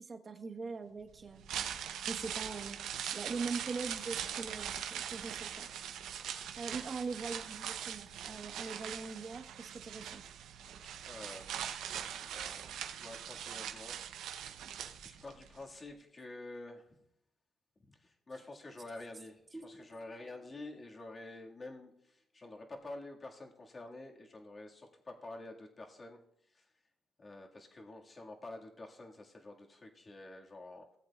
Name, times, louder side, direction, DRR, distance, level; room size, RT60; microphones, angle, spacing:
voice 1, 0.0-1.4 2.0-2.8 3.1-5.7 6.6-10.2, right 4 dB, 40° right, 4 dB, 1.3 m, -42 dB
sound 1, 1.3-15.5 15.8-15.9, right 9 dB, 80° right, 0.8 m, -41 dB
voice 2, 11.0-11.7 12.2-14.5 15.0-16.9 17.9-26.2 26.5-26.7 27.2-30.9, left 2 dB, 30° left, 0 dB, 1.9 m, -49 dB
sound 2, 19.5-22.9, right 1 dB, 10° right, 1.7 m, -56 dB
18.0 x 7.9 x 2.4 m, 0.76 s
cardioid pair, 90°, 0 cm